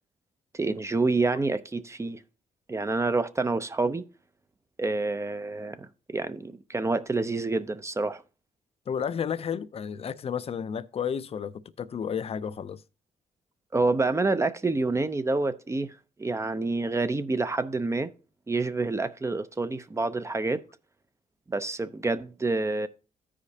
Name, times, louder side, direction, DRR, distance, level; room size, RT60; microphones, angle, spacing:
voice 1, 0.5-2.2 2.7-4.1 4.8-8.2 13.7-15.9 16.2-18.1 18.5-20.6 21.5-22.9, right 3 dB, 20° right, 0.6 m, -28 dB
voice 2, 8.9-12.8, left 7 dB, 45° left, 0.5 m, -32 dB
14.0 x 5.0 x 2.8 m
cardioid pair, 75°, 14 cm